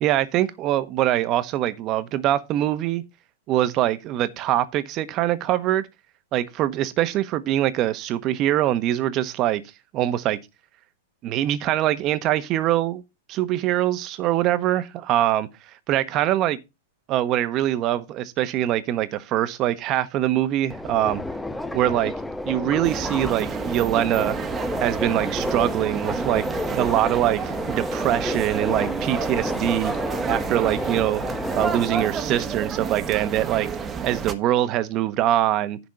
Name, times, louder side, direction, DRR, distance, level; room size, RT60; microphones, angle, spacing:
voice 1, 0.0-3.0 3.5-5.9 6.3-9.6 9.9-10.4 11.2-13.0 13.3-15.5 15.9-16.6 17.1-21.2 21.7-22.1 22.5-24.3 24.8-26.4 26.7-29.9 30.3-31.2 31.5-33.7 34.0-35.8, right 13 dB, 40° right, 1.2 m, -23 dB
Subway metro underground, 20.7-32.1, left 1 dB, 5° left, 0.8 m, -31 dB
sound 1, 22.8-34.3, right 6 dB, 20° right, 1.3 m, -30 dB
10.5 x 4.2 x 6.5 m
hypercardioid pair, 120°, 0 cm